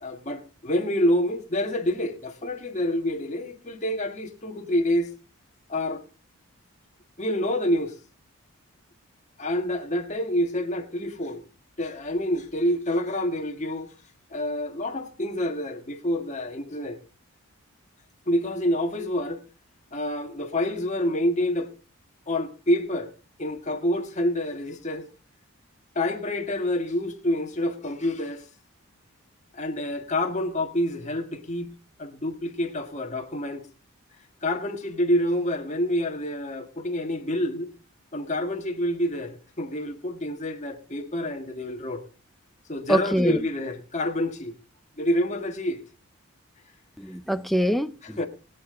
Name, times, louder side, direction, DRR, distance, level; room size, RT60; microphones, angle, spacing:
voice 1, 0.0-5.1 5.7-6.0 7.2-8.0 9.4-11.4 11.8-13.9 14.3-17.0 18.3-19.4 19.9-21.7 22.3-23.1 23.4-25.1 26.0-28.5 29.5-31.7 32.0-33.7 34.4-37.7 38.1-42.0 42.7-44.5 45.0-45.8 48.2-48.3, left 1 dB, 30° left, 1.7 m, -27 dB
voice 2, 42.9-43.5 47.0-48.2, equal, ahead, 0.5 m, -24 dB
21.5 x 8.6 x 3.8 m
head